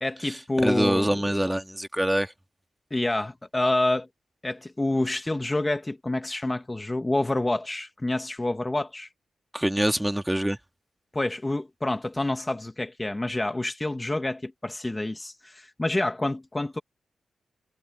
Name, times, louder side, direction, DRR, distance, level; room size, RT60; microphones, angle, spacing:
voice 1, 0.0-1.3 2.9-4.1 4.4-9.1 11.1-16.8, left 2 dB, 15° left, 1.1 m, -28 dB
voice 2, 0.6-2.3 9.5-10.6, right 1 dB, 5° right, 1.7 m, -25 dB
wide cardioid pair, 135°, 0 cm